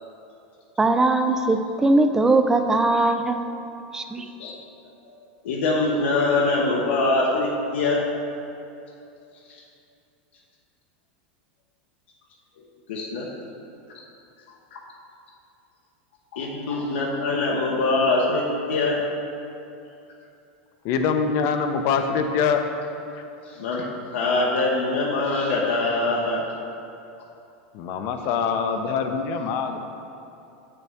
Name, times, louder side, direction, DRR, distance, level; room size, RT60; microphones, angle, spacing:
voice 1, 0.8-3.4 3.9-4.3, right 2 dB, 10° right, 7 dB, 0.4 m, -20 dB
voice 2, 5.4-8.0 12.6-13.3 16.3-19.0 23.4-26.5, left 2 dB, 80° left, -3 dB, 1.0 m, -23 dB
voice 3, 20.8-22.6 27.7-29.8, left 6 dB, 45° left, 6 dB, 0.7 m, -24 dB
7.7 x 6.9 x 3.5 m, 2.7 s
supercardioid pair, 140°, 6 cm